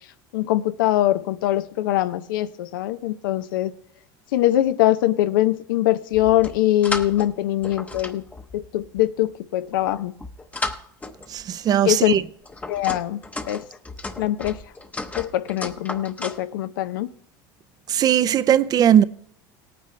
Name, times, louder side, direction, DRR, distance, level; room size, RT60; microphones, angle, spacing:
voice 1, 0.3-3.7 4.3-8.2 8.5-10.1 11.9-12.1 12.7-13.2 13.5-13.6 14.2-14.6 15.2-17.1, left 14 dB, 90° left, 0.6 m, -22 dB
sound 1, 6.1-7.3 7.6-9.0 9.7-11.4 12.1-16.4, left 2 dB, 15° left, 0.8 m, -34 dB
voice 2, 11.3-12.2 17.9-19.0, right 10 dB, 35° right, 0.5 m, -18 dB
17.0 x 9.4 x 3.2 m
supercardioid pair, 115°, 11 cm